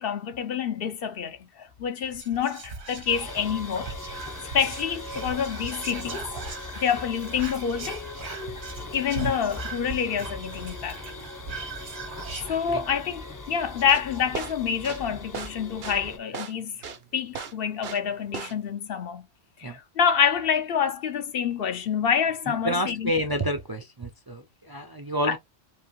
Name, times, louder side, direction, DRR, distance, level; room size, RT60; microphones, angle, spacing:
voice 1, 0.0-3.9 4.5-6.3 6.8-8.0 8.9-11.1 12.5-16.8 17.1-19.3 19.6-23.1 25.3-25.4, left 7 dB, 65° left, 0.9 m, -27 dB
Whispering, 2.1-13.2 13.5-13.6 13.8-14.2, right 4 dB, 85° right, 1.4 m, -39 dB
sound 1, 3.1-16.2, left 2 dB, 25° left, 0.5 m, -40 dB
sound 2, 13.8-18.1 18.3-18.7, right 6 dB, 70° right, 1.0 m, -36 dB
voice 2, 22.4-25.4, equal, 30° right, 0.4 m, -29 dB
4.9 x 2.9 x 3.0 m
omnidirectional pair, 1.1 m